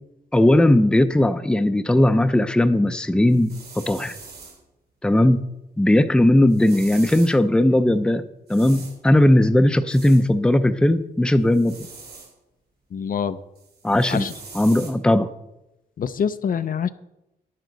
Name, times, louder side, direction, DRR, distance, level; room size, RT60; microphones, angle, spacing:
voice 1, 0.3-3.5 3.9-4.2 5.0-5.4 5.8-8.2 8.5-11.8 13.8-14.2 14.5-15.3, left 1 dB, 5° left, 10 dB, 0.5 m, -17 dB
sound 1, 3.3-4.6 6.5-7.4 8.5-9.0 9.9-10.2 11.5-12.3 13.6-14.9, right 4 dB, 65° right, 3.3 m, -42 dB
voice 2, 12.9-13.4 14.1-14.3 16.0-16.9, left 7 dB, 55° left, 12 dB, 0.5 m, -25 dB
11.0 x 10.5 x 3.9 m, 0.91 s
wide cardioid pair, 125°, 17 cm